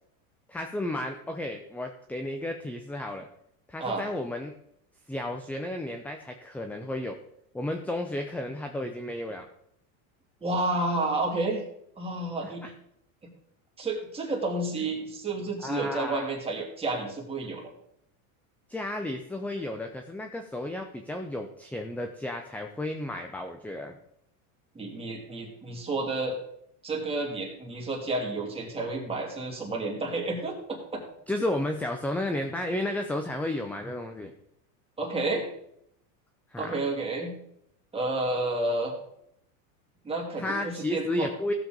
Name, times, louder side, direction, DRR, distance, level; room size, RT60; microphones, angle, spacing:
voice 1, 0.5-3.3 3.7-4.5 5.1-7.2 7.5-9.5 12.4-12.7 14.8-14.9 15.6-16.4 18.7-24.0 31.3-34.3 36.5-36.8 40.4-41.5, left 1 dB, 5° left, 5 dB, 0.6 m, -33 dB
voice 2, 10.4-11.6 12.0-12.7 13.8-17.7 24.7-26.4 26.8-31.0 35.0-35.5 36.6-37.3 37.9-38.9 40.0-41.3, right 2 dB, 15° right, -1 dB, 2.6 m, -30 dB
15.5 x 7.1 x 3.9 m, 0.74 s
supercardioid pair, 130°, 43 cm